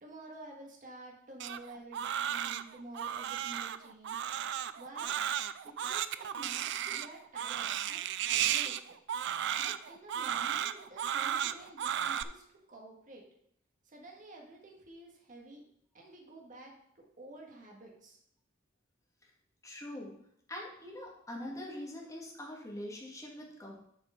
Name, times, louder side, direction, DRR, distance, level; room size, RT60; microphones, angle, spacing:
voice 1, 0.0-4.2 4.8-5.1 5.6-8.9 9.6-13.2 13.8-15.7 15.9-18.2, right 2 dB, 45° right, 0 dB, 1.8 m, -51 dB
Crying sobbing, 1.4-12.2, right 10 dB, 65° right, 0.4 m, -34 dB
voice 2, 19.6-20.1 20.5-23.8, left 1 dB, 15° left, -3 dB, 2.1 m, -43 dB
8.0 x 5.0 x 5.6 m, 0.70 s
head